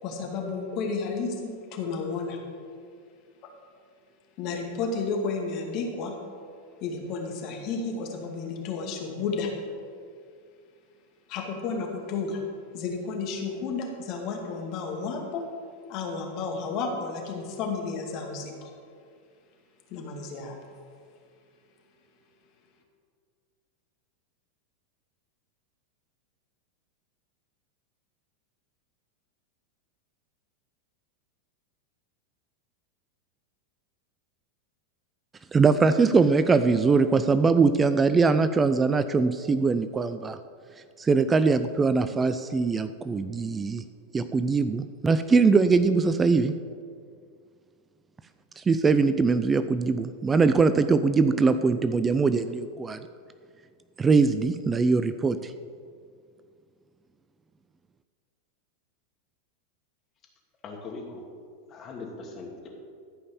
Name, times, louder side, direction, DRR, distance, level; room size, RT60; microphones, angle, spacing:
voice 1, 0.0-2.4 3.4-3.5 4.4-6.2 6.8-9.5 11.3-12.4 12.7-15.5 15.9-18.7 19.9-20.6, left 4 dB, 50° left, 1 dB, 2.3 m, -32 dB
voice 2, 35.5-40.4 41.0-43.8 44.1-46.6 48.6-53.0 54.0-55.5, right 4 dB, 20° right, 12 dB, 0.5 m, -22 dB
voice 3, 60.6-61.2 61.7-62.7, left 3 dB, 35° left, 0 dB, 2.6 m, -40 dB
14.0 x 5.4 x 7.1 m, 2.2 s
hypercardioid pair, 100°, 0 cm